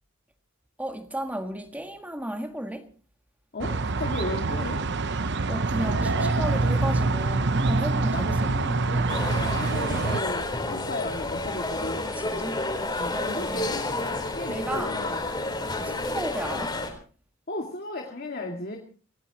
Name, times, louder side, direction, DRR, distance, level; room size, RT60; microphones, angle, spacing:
voice 1, 0.8-2.9 5.5-8.5 12.1-12.6 13.1-13.8 14.5-14.9 15.8-16.7, right 1 dB, 5° right, 1.5 m, -34 dB
voice 2, 3.5-4.8 5.8-6.3 8.1-12.1 13.0-13.8 14.4-15.4 15.8-16.0 17.5-18.8, left 2 dB, 45° left, 2.2 m, -35 dB
sound 1, 3.6-10.2, right 3 dB, 55° right, 0.9 m, -25 dB
sound 2, 9.1-16.9, left 2 dB, 20° left, 4.0 m, -30 dB
26.0 x 18.0 x 3.0 m
head